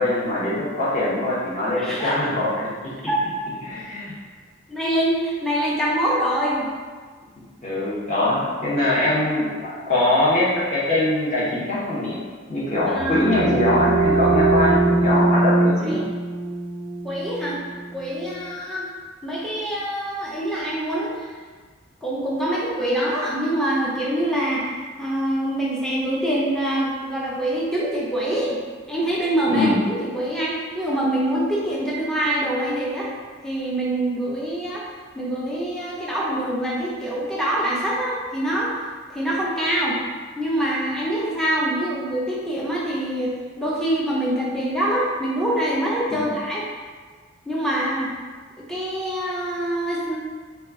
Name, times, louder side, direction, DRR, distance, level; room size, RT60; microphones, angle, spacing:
voice 1, 0.0-2.7 3.6-4.1 7.6-12.2 12.5-16.0 29.5-29.7 46.1-46.2, left 1 dB, 35° left, -8 dB, 0.8 m, -22 dB
voice 2, 1.8-2.1 3.0-3.3 4.7-6.7 12.9-13.3 15.8-16.0 17.0-17.6 17.9-18.9 19.2-21.3 22.0-24.6 25.0-28.6 28.9-33.1 33.4-34.8 35.1-38.7 39.1-40.0 40.4-46.6 47.5-48.1 48.6-50.2, right 1 dB, 5° left, -6 dB, 0.4 m, -25 dB
sound 1, 12.6-18.2, right 2 dB, 70° right, 0.4 m, -22 dB
2.9 x 2.3 x 3.5 m, 1.5 s
head